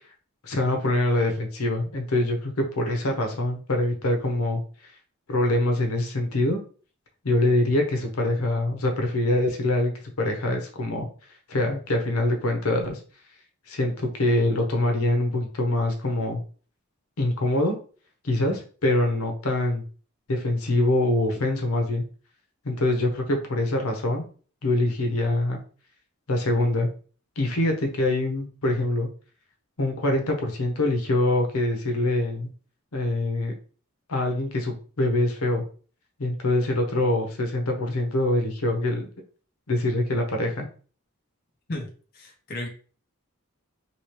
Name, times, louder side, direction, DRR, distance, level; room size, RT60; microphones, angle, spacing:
voice 1, 0.4-4.6 5.3-6.6 7.2-9.9 10.2-11.1 11.5-13.0 13.7-16.4 17.2-17.7 18.2-19.8 20.3-22.0 22.6-24.2 24.6-25.6 26.3-26.9 27.4-29.1 29.8-32.5 32.9-33.5 34.1-35.6 36.2-39.1 39.7-40.7, left 1 dB, 80° left, 3 dB, 0.8 m, -24 dB
voice 2, 42.1-42.7, left 1 dB, 45° left, 2 dB, 0.6 m, -33 dB
3.0 x 2.8 x 3.0 m, 0.41 s
head